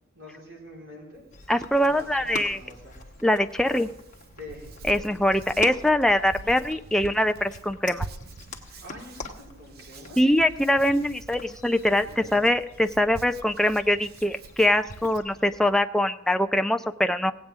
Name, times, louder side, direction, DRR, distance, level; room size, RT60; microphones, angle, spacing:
voice 1, 0.1-1.2 1.8-3.0 4.4-4.7 8.8-10.2 12.0-12.4, left 1 dB, 75° right, -3 dB, 3.8 m, -45 dB
Hands, 1.1-15.2, right 3 dB, 50° right, 0.6 m, -45 dB
sound 1, 1.3-15.8, left 2 dB, 40° left, 1.0 m, -44 dB
voice 2, 1.5-2.6 3.2-3.9 4.8-8.1 10.2-17.3, left 1 dB, ahead, 7 dB, 0.3 m, -23 dB
17.0 x 8.8 x 3.5 m, 0.89 s
head